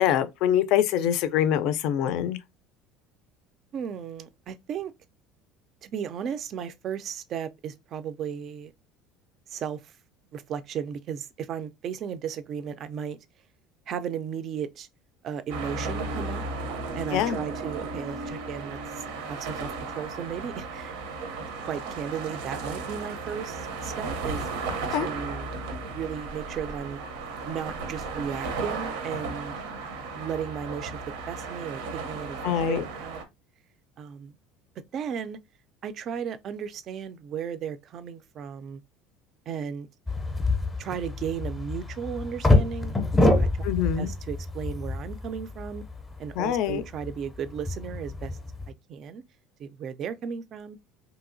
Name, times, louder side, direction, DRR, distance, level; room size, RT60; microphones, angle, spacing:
voice 1, 0.0-2.4 17.1-17.4 24.9-25.1 32.4-32.8 43.6-44.1 46.4-46.8, left 10 dB, 65° left, 0.3 m, -24 dB
voice 2, 3.7-4.9 5.8-8.7 9.5-9.9 10.3-13.2 13.9-14.9 15.2-16.4 17.0-20.9 21.3-24.5 25.0-25.5 25.9-27.0 27.4-29.5 30.2-31.0 31.3-33.2 34.0-34.4 34.9-35.4 35.8-38.8 39.5-39.9 40.8-42.9 43.2-43.6 44.0-45.8 46.2-48.4 48.7-49.2 49.6-50.8, right 7 dB, 45° right, 0.3 m, -35 dB
sound 1, 15.5-33.2, right 3 dB, 90° right, 0.6 m, -35 dB
sound 2, 40.1-48.7, left 2 dB, 10° left, 0.5 m, -27 dB
3.0 x 2.7 x 2.5 m
cardioid pair, 135°, 0 cm